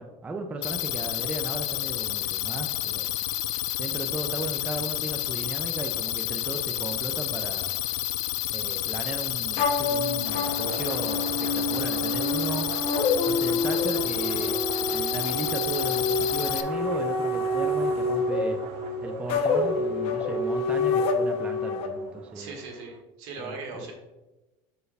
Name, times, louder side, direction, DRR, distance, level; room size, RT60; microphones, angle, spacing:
voice 1, 0.0-3.1 3.8-7.7 8.5-12.7 13.3-14.6 14.9-18.6 19.0-22.6 23.4-23.9, right 3 dB, 10° right, 4 dB, 0.4 m, -35 dB
sound 1, 0.6-16.6, left 14 dB, 85° left, 0.4 m, -30 dB
sound 2, 9.6-21.9, left 3 dB, 50° left, 0.8 m, -27 dB
sound 3, 10.2-23.0, right 7 dB, 85° right, 0.5 m, -42 dB
voice 2, 22.3-23.9, right 3 dB, 65° right, 2 dB, 1.6 m, -39 dB
6.4 x 4.6 x 3.3 m, 1.1 s
cardioid pair, 160°, 12 cm